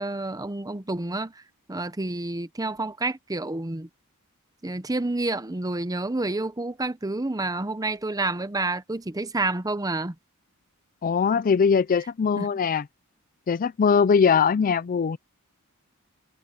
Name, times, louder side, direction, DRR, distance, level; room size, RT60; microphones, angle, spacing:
voice 1, 0.0-1.3 1.7-3.9 4.6-10.1 12.4-12.5, right 2 dB, 15° right, 0.8 m, -29 dB
voice 2, 11.0-12.8 13.5-15.2, left 6 dB, 40° left, 0.4 m, -21 dB
head